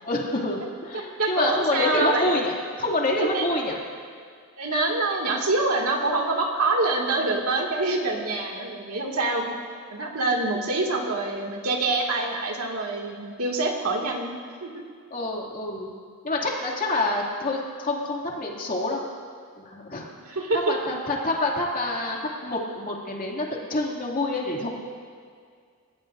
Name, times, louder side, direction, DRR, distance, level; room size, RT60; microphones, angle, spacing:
voice 1, 0.0-3.8 15.1-15.9 16.2-19.0 19.6-20.1 20.5-24.7, left 2 dB, 40° left, -2 dB, 2.4 m, -27 dB
voice 2, 0.9-2.3 3.2-3.5 4.6-9.5 9.9-14.3 14.6-14.8 20.2-20.8, right 2 dB, 75° right, 0 dB, 2.2 m, -26 dB
29.0 x 15.0 x 2.6 m, 2.1 s
head